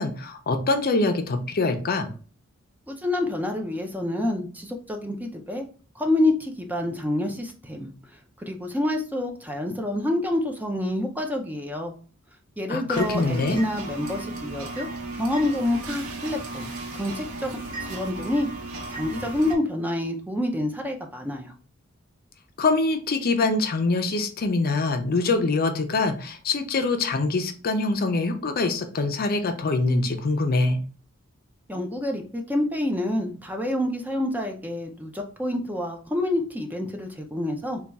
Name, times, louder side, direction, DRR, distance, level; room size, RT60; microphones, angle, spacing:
voice 1, 0.0-2.1 12.7-13.6 22.6-30.8, left 3 dB, 45° left, 7 dB, 0.5 m, -24 dB
voice 2, 2.9-5.6 6.0-7.9 8.4-11.9 12.6-14.9 15.2-17.5 17.8-18.5 18.9-21.5 31.7-37.8, left 1 dB, 10° right, 3 dB, 0.4 m, -27 dB
sound 1, 12.9-19.6, right 2 dB, 80° right, 0.9 m, -35 dB
3.4 x 2.3 x 4.0 m, 0.39 s
head